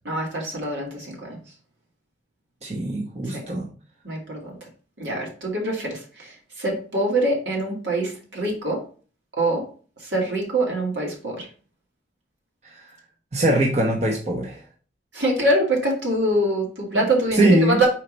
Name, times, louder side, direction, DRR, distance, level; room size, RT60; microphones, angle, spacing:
voice 1, 0.0-1.4 4.0-4.6 5.0-6.3 6.6-8.8 9.4-9.6 10.0-11.4 15.1-17.9, right 1 dB, 80° right, -1 dB, 2.4 m, -24 dB
voice 2, 2.6-3.7 12.7-12.8 13.3-14.6 16.9-17.1 17.3-17.8, right 1 dB, 35° right, -1 dB, 1.0 m, -21 dB
4.6 x 4.4 x 5.3 m, 0.40 s
head